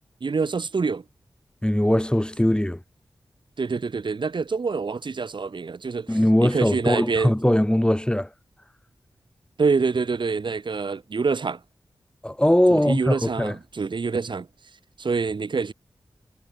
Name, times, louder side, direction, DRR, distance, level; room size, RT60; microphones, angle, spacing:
voice 1, 0.2-1.0 3.6-7.3 9.6-11.6 12.7-14.5 15.0-15.7, right 4 dB, 70° right, 3.3 m, -26 dB
voice 2, 1.6-2.8 6.1-8.3 12.2-13.5, left 1 dB, 10° left, 5.7 m, -20 dB
cardioid pair, 50°, 8 cm